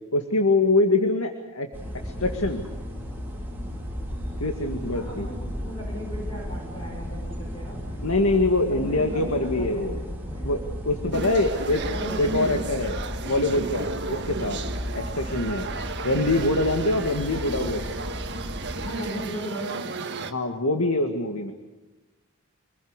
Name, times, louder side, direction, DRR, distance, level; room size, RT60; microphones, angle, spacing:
voice 1, 0.1-1.7 2.0-2.7 4.4-5.3 8.0-10.0 10.4-11.8 12.2-13.0 13.2-14.6 14.9-15.7 16.0-17.8 20.2-21.5, left 2 dB, 80° left, 5 dB, 2.0 m, -24 dB
sound 1, 1.7-18.9, equal, 10° right, 4.5 m, -34 dB
voice 2, 4.9-8.0 8.6-10.5 11.9-12.3 17.4-17.5 18.8-20.0, equal, 20° left, -2 dB, 6.4 m, -37 dB
sound 2, 11.1-20.3, right 3 dB, 55° right, 1.7 m, -34 dB
27.0 x 21.0 x 8.1 m, 1.1 s
head